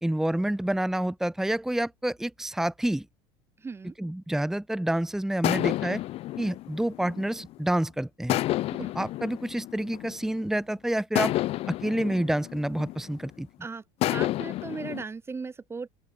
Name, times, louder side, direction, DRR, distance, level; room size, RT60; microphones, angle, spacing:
voice 1, 0.0-3.0 4.0-6.0 6.4-8.4 8.9-11.3 11.7-13.5, right 1 dB, 5° right, 1.4 m, -28 dB
voice 2, 3.6-3.9 8.7-8.9 13.6-13.8 14.1-15.9, right 4 dB, 20° right, 6.8 m, -37 dB
sound 1, 5.4-7.7 8.3-10.4 11.1-13.4 14.0-15.0, left 16 dB, 50° left, 1.0 m, -30 dB
open air
supercardioid pair, 110°, 13 cm